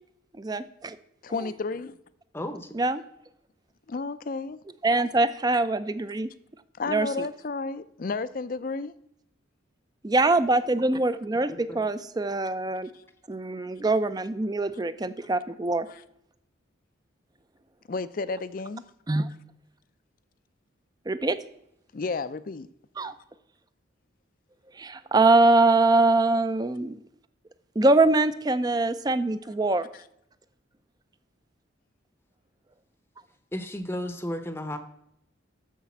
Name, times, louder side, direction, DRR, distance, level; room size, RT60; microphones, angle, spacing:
voice 1, 0.4-1.0 2.7-3.0 4.8-6.3 6.9-7.3 10.0-12.9 13.3-15.9 19.1-19.3 21.1-21.4 23.0-23.1 24.8-27.0 27.8-29.9, right 2 dB, 20° right, 0.4 m, -23 dB
voice 2, 1.2-2.0 3.9-4.6 6.8-8.9 12.9-13.0 15.9-16.0 17.9-18.8 21.9-22.7, left 4 dB, 45° left, 0.4 m, -32 dB
voice 3, 2.3-2.7 11.7-11.8 33.5-34.8, left 1 dB, 10° left, 0.7 m, -33 dB
7.3 x 6.6 x 7.2 m
head